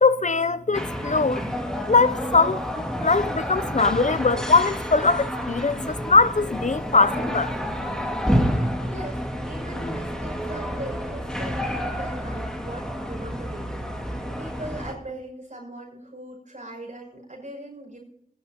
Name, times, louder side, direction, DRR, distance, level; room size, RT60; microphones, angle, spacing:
voice 1, 0.0-1.4 1.9-7.5, left 4 dB, 55° left, 0.5 m, -21 dB
sound 1, 0.7-14.9, equal, 5° left, 2.1 m, -29 dB
voice 2, 8.9-9.2 9.5-18.0, right 1 dB, 60° right, 6.2 m, -39 dB
21.5 x 10.5 x 2.9 m
wide cardioid pair, 45°, 15 cm